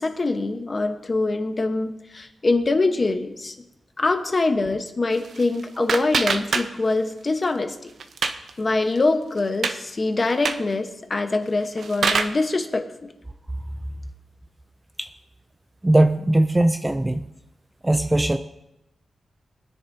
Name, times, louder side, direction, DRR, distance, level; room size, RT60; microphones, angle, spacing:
voice 1, 0.0-3.5 4.0-7.9 8.6-12.8, left 3 dB, 30° left, 6 dB, 1.1 m, -24 dB
sound 1, 5.1-7.1 7.4-8.5 8.9-9.0 9.4-9.8 10.3-10.7 11.5-12.4, right 5 dB, 65° right, 0.8 m, -26 dB
voice 2, 15.8-17.2 17.8-18.4, right 1 dB, 15° right, 8 dB, 0.4 m, -19 dB
21.5 x 10.0 x 2.8 m, 0.90 s
wide cardioid pair, 125°, 0 cm